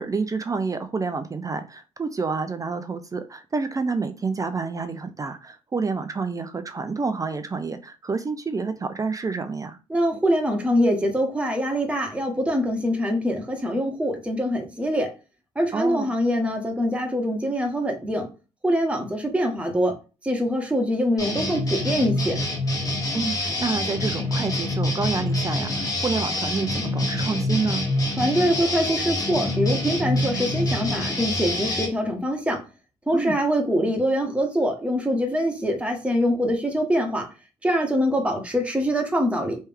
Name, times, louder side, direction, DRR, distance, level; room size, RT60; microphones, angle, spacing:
voice 1, 0.0-9.8 15.7-16.1 23.1-27.9 33.1-33.4, right 4 dB, 30° right, 0.5 m, -28 dB
voice 2, 9.9-15.1 15.5-18.3 18.6-19.9 20.2-22.4 28.2-32.6 33.1-37.3 37.6-39.6, equal, 10° right, 1.2 m, -24 dB
sound 1, 21.2-31.9, left 1 dB, 30° left, 1.5 m, -26 dB
3.3 x 3.1 x 3.4 m
cardioid pair, 85°, 12 cm